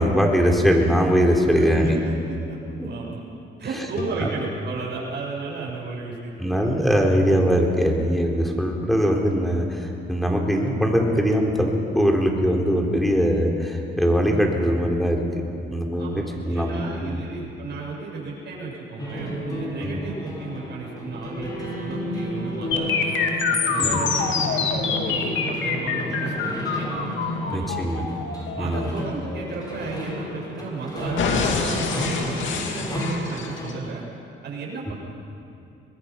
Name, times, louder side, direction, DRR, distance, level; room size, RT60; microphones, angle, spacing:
voice 1, 0.0-2.0 2.8-2.9 4.2-4.3 6.4-15.3 15.7-16.1 16.5-17.2 19.8-20.0 23.8-24.0 27.4-28.1 28.6-28.9, equal, ahead, 0 dB, 3.6 m, -21 dB
voice 2, 1.5-3.2 3.6-6.9 16.0-26.9 27.4-28.1 28.6-34.0 34.4-34.9, right 4 dB, 60° right, -3 dB, 7.1 m, -34 dB
sound 1, 4.0-7.3, equal, 55° left, 4.9 m, -41 dB
sound 2, 19.0-33.7, equal, 20° left, 5.6 m, -32 dB
sound 3, 22.7-30.7 31.2-33.7, left 5 dB, 75° left, 2.4 m, -26 dB
24.0 x 20.5 x 5.8 m, 2.6 s
cardioid pair, 90°, 20 cm